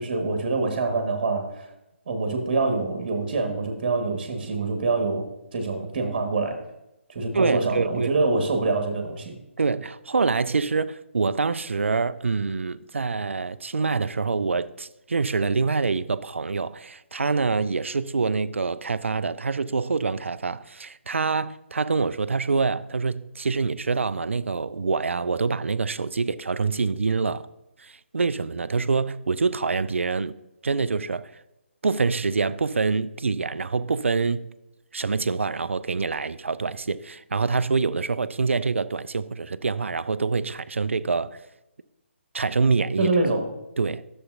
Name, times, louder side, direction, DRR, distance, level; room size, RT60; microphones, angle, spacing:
voice 1, 0.0-1.7 2.1-5.2 5.5-6.6 7.1-9.4 43.0-43.5, right 3 dB, 45° right, 1.5 m, -25 dB
voice 2, 7.3-8.1 9.6-27.5 27.8-30.4 30.6-31.3 31.8-34.5 34.9-41.4 42.3-43.1 43.8-44.0, right 4 dB, 75° right, 0.3 m, -25 dB
10.0 x 6.9 x 2.6 m
figure-of-eight pair, 140°, 7 cm